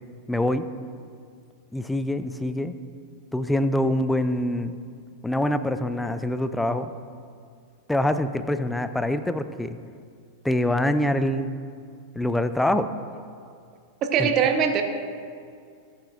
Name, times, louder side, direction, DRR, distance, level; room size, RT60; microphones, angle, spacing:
voice 1, 0.3-0.7 1.7-2.8 3.3-4.7 5.2-6.9 7.9-9.8 10.4-11.6 12.2-12.9 14.2-14.3, left 1 dB, 5° left, 11 dB, 0.5 m, -25 dB
voice 2, 14.0-14.8, right 7 dB, 35° right, 5 dB, 1.0 m, -21 dB
19.0 x 9.1 x 2.5 m, 2.2 s
figure-of-eight pair, 90°, 0 cm